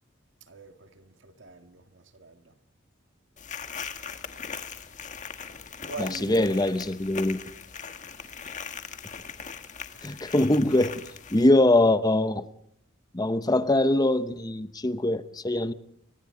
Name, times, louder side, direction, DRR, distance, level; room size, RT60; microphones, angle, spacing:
voice 1, 0.5-2.5 5.9-6.5, right 3 dB, 80° right, 1.9 m, -42 dB
sound 1, 3.4-11.5, left 6 dB, 40° left, 1.6 m, -40 dB
voice 2, 6.0-7.4 10.0-10.9 11.3-12.4 13.1-15.7, left 1 dB, 20° left, 0.8 m, -23 dB
29.5 x 23.5 x 3.8 m
head